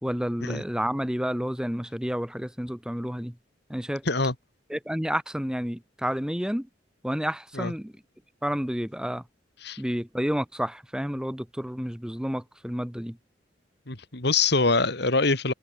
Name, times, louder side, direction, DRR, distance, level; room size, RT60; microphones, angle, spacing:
voice 1, 0.0-3.4 3.7-4.0 4.7-6.7 7.0-7.9 8.4-9.2 9.8-13.2, equal, 5° right, 1.2 m, -30 dB
voice 2, 13.9-15.5, left 3 dB, 60° left, 2.7 m, -24 dB
head